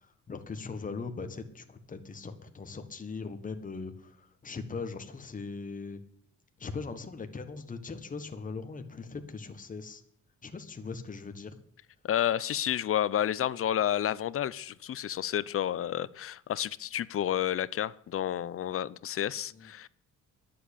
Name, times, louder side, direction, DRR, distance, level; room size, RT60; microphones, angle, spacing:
voice 1, 0.0-6.0 6.6-10.0 10.4-11.6 19.5-19.7, left 4 dB, 25° left, 7 dB, 1.6 m, -40 dB
voice 2, 12.0-19.9, left 11 dB, 50° left, 19 dB, 0.6 m, -30 dB
11.0 x 7.7 x 8.5 m, 0.66 s
cardioid pair, 105°, 30 cm